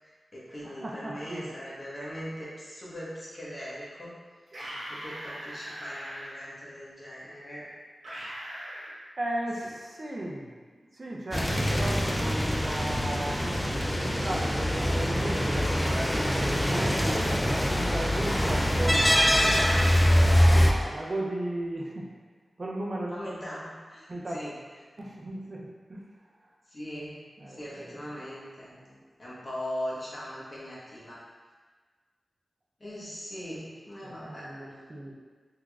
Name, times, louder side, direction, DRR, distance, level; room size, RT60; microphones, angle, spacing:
voice 1, 0.0-4.2 4.5-7.7 9.6-9.7 18.9-19.1 23.1-24.5 26.7-27.2 27.5-28.7 29.2-31.2 32.8-34.5, equal, 35° left, -8 dB, 1.1 m, -40 dB
voice 2, 0.6-1.5 9.2-10.5 10.9-16.3 16.7-19.5 20.1-22.1 22.6-23.2 24.1-24.5 25.0-26.0 27.4-27.9 28.8-29.0 34.0-35.1, right 1 dB, 45° right, -3 dB, 0.5 m, -36 dB
sound 1, 4.5-6.3 8.0-8.9, equal, 70° right, 1.1 m, -40 dB
sound 2, 11.3-20.7, equal, 10° left, 0.3 m, -24 dB
3.5 x 3.0 x 2.3 m, 1.5 s
wide cardioid pair, 65°, 0 cm